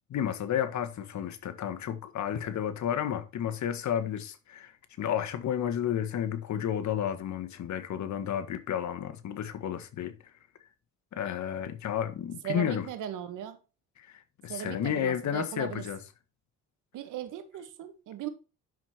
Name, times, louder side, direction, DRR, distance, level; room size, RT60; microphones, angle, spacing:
voice 1, 0.1-4.7 5.0-10.2 11.1-12.8 14.0-16.0, left 9 dB, 70° left, 1.7 m, -32 dB
voice 2, 12.4-13.6 14.5-15.9 16.9-18.3, right 11 dB, 85° right, 1.8 m, -38 dB
10.0 x 6.7 x 4.5 m
cardioid pair, 90°, 30 cm